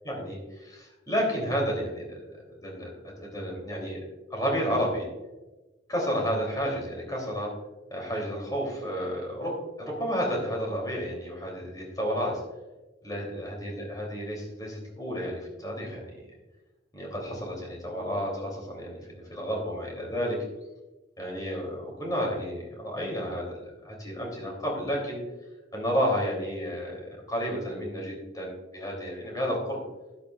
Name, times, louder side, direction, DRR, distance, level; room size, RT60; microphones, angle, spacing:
voice 1, 0.0-2.9 3.2-4.0 4.3-5.1 5.9-7.6 7.9-12.4 13.0-16.1 16.9-20.4 21.2-23.5 23.8-25.2 25.7-29.8, equal, 20° left, -2 dB, 3.3 m, -31 dB
12.5 x 11.0 x 2.5 m, 1.1 s
head